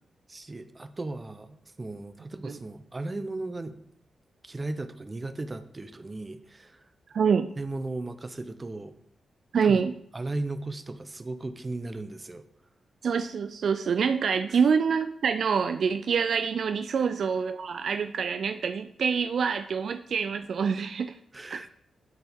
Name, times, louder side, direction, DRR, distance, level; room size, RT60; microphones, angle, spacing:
voice 1, 0.3-3.8 4.4-6.8 7.6-8.9 9.6-9.8 10.1-12.4 14.5-14.6 21.3-21.7, right 2 dB, 30° right, 11 dB, 0.7 m, -36 dB
voice 2, 7.1-7.5 9.5-9.9 13.0-21.2 21.5-21.7, right 6 dB, 70° right, 9 dB, 0.3 m, -26 dB
12.0 x 4.5 x 3.5 m, 0.68 s
cardioid pair, 55°, 0 cm